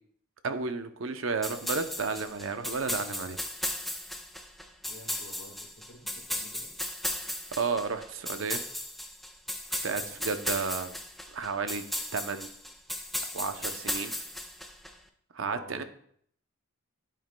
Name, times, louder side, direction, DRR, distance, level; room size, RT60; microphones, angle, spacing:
voice 1, 0.4-3.4 7.6-8.6 9.8-11.0 11.3-11.8 12.1-12.5 13.3-14.1 15.3-15.8, right 4 dB, 65° right, 9 dB, 0.6 m, -32 dB
sound 1, 1.4-14.9, left 1 dB, ahead, 0.5 m, -36 dB
voice 2, 4.8-6.7 15.4-15.8, left 2 dB, 75° left, 2 dB, 1.6 m, -50 dB
9.1 x 8.9 x 2.2 m, 0.65 s
head